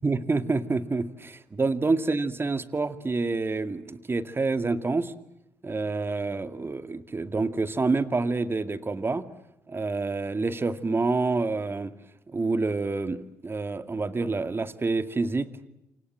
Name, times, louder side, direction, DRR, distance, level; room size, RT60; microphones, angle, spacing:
voice 1, 0.0-5.1 5.6-9.2 9.7-11.9 12.3-15.5, right 3 dB, 30° right, 11 dB, 2.1 m, -27 dB
28.0 x 26.5 x 7.5 m, 0.87 s
hypercardioid pair, 45°, 7 cm